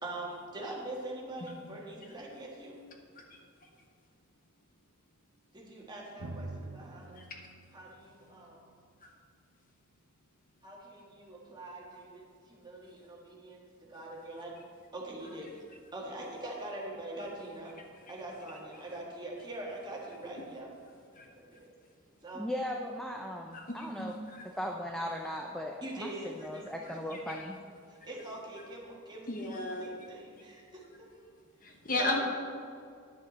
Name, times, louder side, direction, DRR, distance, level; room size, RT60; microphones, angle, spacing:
voice 1, 0.0-2.8 5.5-7.2 7.7-8.7 10.6-13.6 13.9-14.5 14.9-15.5 15.9-17.7 18.1-20.7 21.2-21.7 22.2-22.5 25.8-26.6 26.9-27.0 27.9-31.3 31.9-32.2, right 1 dB, 20° right, -3 dB, 1.6 m, -43 dB
Drum, 6.2-9.7, right 2 dB, 80° right, 0.8 m, -46 dB
voice 2, 22.3-24.1 24.6-27.6, equal, 5° left, 1 dB, 0.5 m, -38 dB
voice 3, 23.5-24.5 27.1-27.4 29.3-29.9 31.6-32.2, left 2 dB, 40° left, 2 dB, 1.0 m, -35 dB
10.5 x 7.8 x 4.1 m, 2.2 s
head